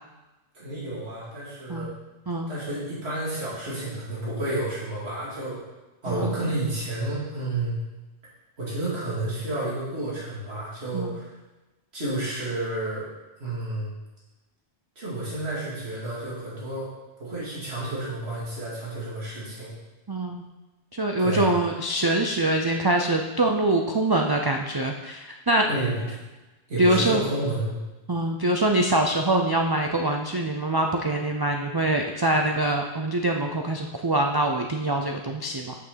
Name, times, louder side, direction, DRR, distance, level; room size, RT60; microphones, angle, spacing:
voice 1, 0.5-1.9 2.5-5.6 6.0-7.8 8.6-11.3 11.9-13.1 13.4-13.9 15.0-16.9 17.2-19.7 21.2-21.6 25.6-26.1 26.7-27.8, right 1 dB, 80° right, -8 dB, 2.7 m, -30 dB
voice 2, 20.1-20.4 21.0-25.7 26.8-27.2 28.1-35.7, right 1 dB, 30° right, 2 dB, 0.5 m, -24 dB
6.7 x 5.9 x 6.8 m, 1.1 s
omnidirectional pair, 1.1 m